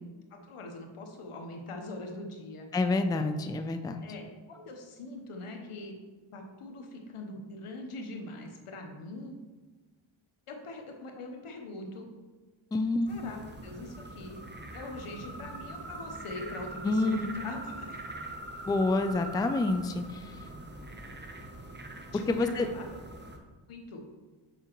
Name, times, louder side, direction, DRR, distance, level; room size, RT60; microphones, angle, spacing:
voice 1, 0.3-2.7 4.0-5.9 6.3-9.4 10.5-12.1 13.1-14.4 14.7-18.0 20.9-21.0 22.1-22.9 23.7-24.0, left 2 dB, 85° left, 3 dB, 1.0 m, -42 dB
voice 2, 2.7-4.0 12.7-13.1 16.8-17.2 18.6-20.2 22.3-22.7, left 2 dB, 10° left, 8 dB, 0.3 m, -28 dB
sound 1, 13.1-23.4, right 2 dB, 20° right, 0.8 m, -43 dB
7.0 x 4.8 x 3.0 m, 1.3 s
cardioid pair, 60°, 50 cm